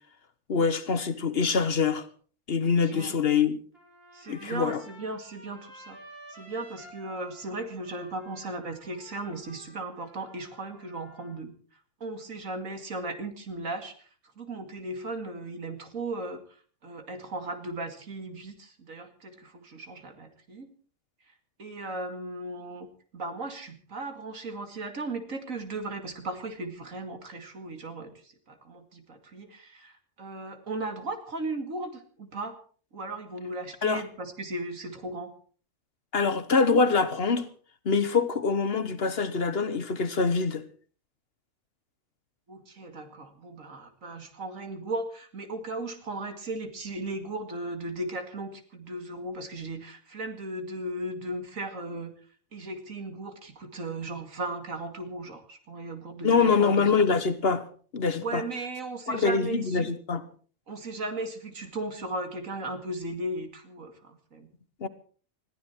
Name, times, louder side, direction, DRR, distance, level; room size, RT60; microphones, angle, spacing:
voice 1, 0.5-2.0 2.5-3.6 4.3-4.8 33.8-34.1 36.1-37.5 37.8-40.7 56.2-57.7 57.9-58.4 59.1-60.2 64.8-64.9, left 5 dB, 50° left, 1.3 m, -24 dB
voice 2, 2.6-3.2 4.1-6.0 6.3-11.5 12.0-14.1 14.4-16.4 16.8-20.7 21.6-32.6 32.9-35.3 42.5-52.1 52.5-57.0 58.2-59.9 60.7-64.5, right 2 dB, 80° right, 2.6 m, -36 dB
Trumpet, 3.7-11.4, equal, 45° right, 5.5 m, -52 dB
21.0 x 14.5 x 4.5 m
omnidirectional pair, 1.4 m